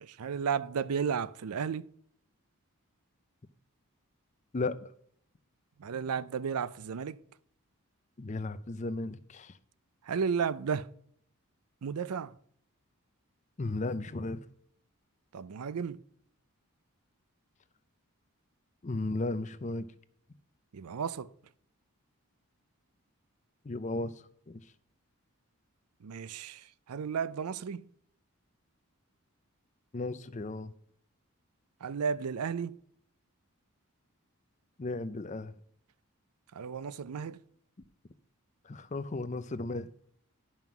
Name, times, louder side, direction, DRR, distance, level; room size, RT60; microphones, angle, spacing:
voice 1, 0.0-1.9 5.8-7.2 10.0-10.9 11.8-12.4 15.3-16.0 20.7-21.3 26.0-27.9 31.8-32.8 36.5-37.4, right 6 dB, 85° right, 0.5 m, -33 dB
voice 2, 4.5-4.9 8.2-9.6 13.6-14.5 18.8-19.9 23.6-24.7 29.9-30.7 34.8-35.5 38.6-39.9, left 2 dB, 30° left, 0.5 m, -35 dB
11.0 x 5.7 x 5.9 m
head